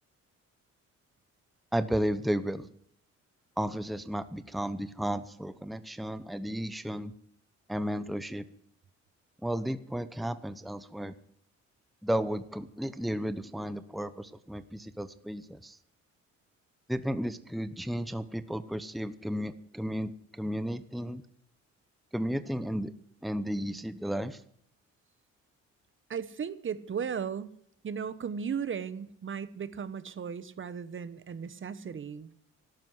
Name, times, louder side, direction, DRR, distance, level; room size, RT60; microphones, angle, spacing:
voice 1, 1.7-2.7 3.6-7.1 7.7-8.4 9.4-11.1 12.0-15.8 16.9-21.2 22.1-22.9 23.2-24.4, equal, ahead, 13 dB, 0.9 m, -33 dB
voice 2, 26.1-27.5 27.8-32.3, right 7 dB, 40° right, 16 dB, 1.1 m, -36 dB
12.5 x 11.5 x 9.5 m, 0.67 s
cardioid pair, 90°, 30 cm